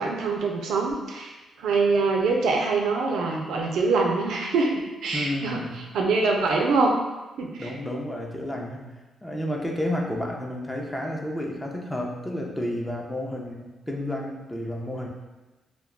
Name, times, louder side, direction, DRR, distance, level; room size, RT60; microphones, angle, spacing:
voice 1, 0.0-5.6 5.9-7.0 7.4-7.7, right 3 dB, 85° right, 1 dB, 0.4 m, -24 dB
voice 2, 5.1-5.8 7.6-8.9 9.2-15.1, left 1 dB, 10° left, 0 dB, 0.5 m, -31 dB
2.2 x 2.2 x 3.5 m, 1.1 s
cardioid pair, 85°, 0 cm